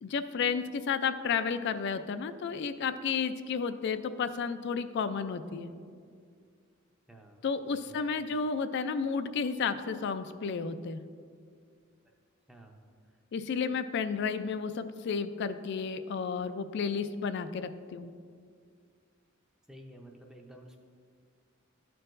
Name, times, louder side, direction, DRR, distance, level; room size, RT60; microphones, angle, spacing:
voice 1, 0.0-5.7 7.4-11.0 13.3-18.1, left 5 dB, 60° left, 11 dB, 0.3 m, -32 dB
voice 2, 7.1-7.5 7.9-8.3 12.5-12.8 19.7-20.8, right 1 dB, 5° right, 1 dB, 0.5 m, -52 dB
12.5 x 4.6 x 2.5 m, 2.1 s
head